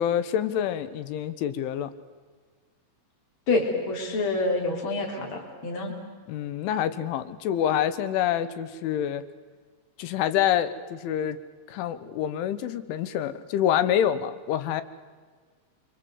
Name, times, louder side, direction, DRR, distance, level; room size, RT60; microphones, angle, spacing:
voice 1, 0.0-1.9 6.3-9.2 10.0-11.4 11.7-14.8, left 10 dB, 85° left, 13 dB, 3.7 m, -26 dB
voice 2, 3.5-5.9, left 3 dB, 25° left, 0 dB, 4.4 m, -27 dB
28.5 x 24.5 x 8.1 m, 1.5 s
omnidirectional pair, 5.4 m